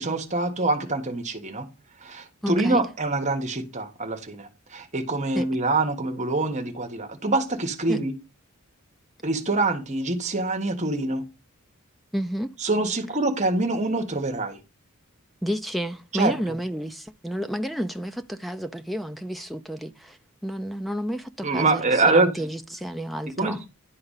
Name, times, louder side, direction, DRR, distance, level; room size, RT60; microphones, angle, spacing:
voice 1, 0.0-1.7 2.0-8.1 9.2-11.2 12.6-14.6 16.1-16.4 21.4-22.3 23.4-23.6, right 2 dB, 35° right, 1.4 m, -25 dB
voice 2, 2.4-2.8 5.3-5.5 7.9-8.0 12.1-12.5 15.4-20.2 20.4-23.6, equal, ahead, 0.6 m, -30 dB
11.0 x 3.9 x 5.6 m
head